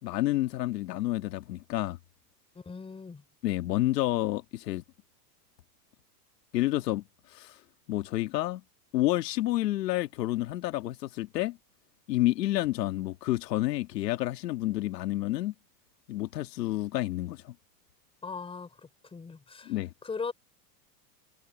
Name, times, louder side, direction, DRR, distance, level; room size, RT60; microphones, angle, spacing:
voice 1, 0.0-2.0 3.4-4.8 6.5-7.0 7.3-7.6 7.9-8.6 8.9-11.6 12.1-15.5 16.1-17.5 19.6-19.9, left 16 dB, 80° left, 1.8 m, -29 dB
voice 2, 2.5-3.2 18.2-18.7 19.1-19.7 20.0-20.3, left 5 dB, 10° left, 4.1 m, -38 dB
supercardioid pair, 145°, 49 cm